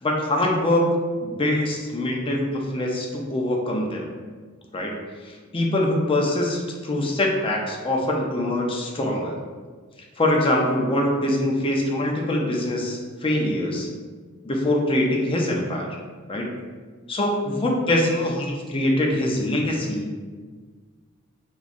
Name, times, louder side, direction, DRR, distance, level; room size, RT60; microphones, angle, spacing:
voice 1, 0.0-4.1 4.7-4.9 5.3-9.3 10.2-13.9 14.4-16.0 16.3-16.5 17.1-20.3, left 1 dB, 25° left, 0 dB, 0.5 m, -23 dB
3.7 x 3.0 x 2.5 m, 1.5 s
head